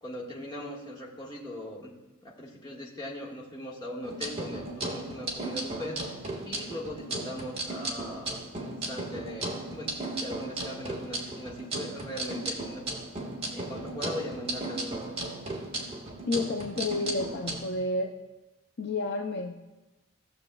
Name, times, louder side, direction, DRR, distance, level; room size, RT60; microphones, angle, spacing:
voice 1, 0.0-1.9 2.2-6.0 6.5-12.8 13.5-15.1, left 1 dB, 20° left, -4 dB, 1.5 m, -40 dB
sound 1, 4.0-17.6, right 2 dB, 25° right, 1.4 m, -36 dB
voice 2, 16.3-18.2 18.8-19.8, left 2 dB, 50° left, 3 dB, 0.5 m, -31 dB
17.5 x 6.8 x 2.3 m, 1.1 s
head